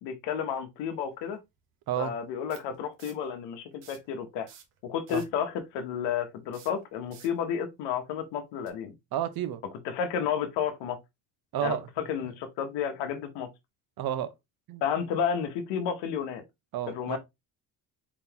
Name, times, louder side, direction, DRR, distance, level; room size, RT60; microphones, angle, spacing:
voice 1, 0.0-1.4 2.0-4.5 4.8-8.9 9.8-11.0 11.6-11.8 12.1-13.5 14.8-16.4 16.9-17.2, left 8 dB, 80° left, 1.0 m, -31 dB
sound 1, 1.0-1.1 2.5-3.3 3.7-4.1 4.4-5.4 6.5-7.4 8.6-8.7, right 9 dB, 85° right, 1.2 m, -52 dB
voice 2, 9.1-9.6 11.5-12.1 14.0-14.3 14.7-14.8 16.7-17.2, right 11 dB, 60° right, 0.9 m, -31 dB
4.1 x 3.9 x 2.9 m
supercardioid pair, 80°, 42 cm